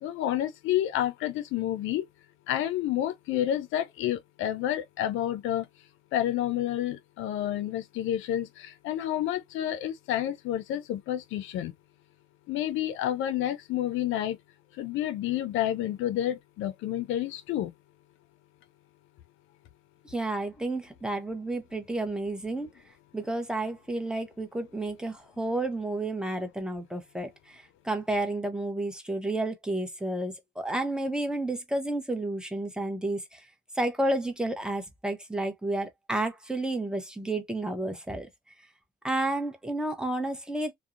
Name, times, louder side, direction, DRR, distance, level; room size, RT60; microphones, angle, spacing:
voice 1, 0.0-2.1 2.5-5.7 6.1-11.7 12.5-14.4 14.7-17.7, left 12 dB, 85° left, 0.4 m, -29 dB
voice 2, 20.0-22.7 23.1-33.4 33.7-38.3 39.0-40.7, right 2 dB, 5° right, 0.7 m, -31 dB
2.6 x 2.0 x 2.4 m
cardioid pair, 90°, 20 cm